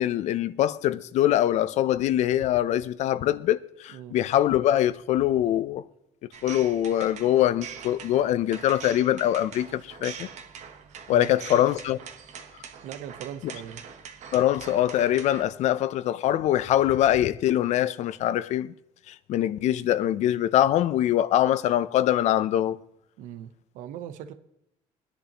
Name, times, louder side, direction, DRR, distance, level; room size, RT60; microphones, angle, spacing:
voice 1, 0.0-5.8 6.4-10.3 11.1-12.0 13.4-13.5 14.3-18.7 19.1-22.8, left 12 dB, 60° left, 0.6 m, -23 dB
sound 1, 6.3-15.4, right 7 dB, 60° right, 1.2 m, -43 dB
voice 2, 12.8-13.8 23.2-24.3, right 10 dB, 80° right, 0.9 m, -40 dB
23.0 x 10.5 x 3.0 m
cardioid pair, 130°, 13 cm